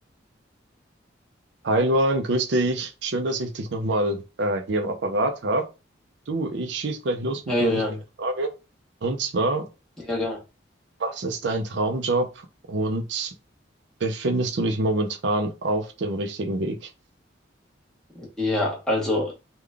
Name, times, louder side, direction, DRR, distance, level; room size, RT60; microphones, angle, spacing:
voice 1, 1.6-5.6 6.3-7.8 8.2-8.5 9.0-9.6 11.0-13.3 14.0-16.9, right 2 dB, 70° right, 0.6 m, -25 dB
voice 2, 7.5-8.0 10.0-10.4 18.1-19.3, left 2 dB, 5° left, 1.1 m, -25 dB
3.7 x 2.3 x 3.3 m
head